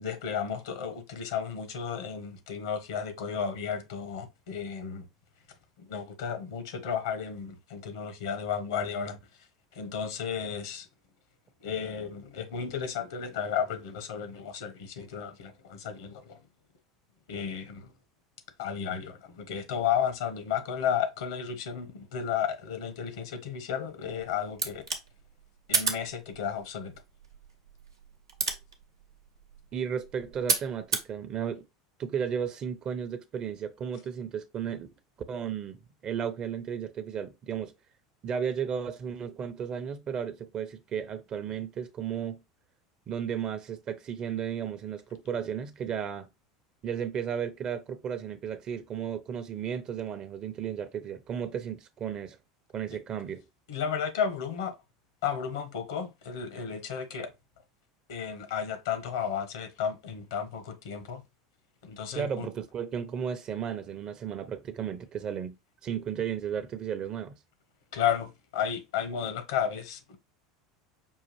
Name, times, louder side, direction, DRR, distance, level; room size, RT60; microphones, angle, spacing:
voice 1, 0.0-5.1 5.8-9.2 9.7-10.9 11.6-16.4 17.3-17.9 18.6-24.8 25.7-27.0 53.7-54.8 55.2-57.3 58.1-61.2 61.8-62.5 67.9-70.2, left 7 dB, 70° left, 0.9 m, -33 dB
sound 1, 24.0-31.1, right 4 dB, 90° right, 0.7 m, -34 dB
voice 2, 29.7-31.6 32.0-34.9 35.3-37.7 38.2-42.4 43.1-46.3 46.8-52.4 52.7-53.5 62.1-65.6 65.8-67.4, right 8 dB, 40° right, 0.6 m, -34 dB
5.5 x 2.4 x 3.1 m
hypercardioid pair, 80°, 2 cm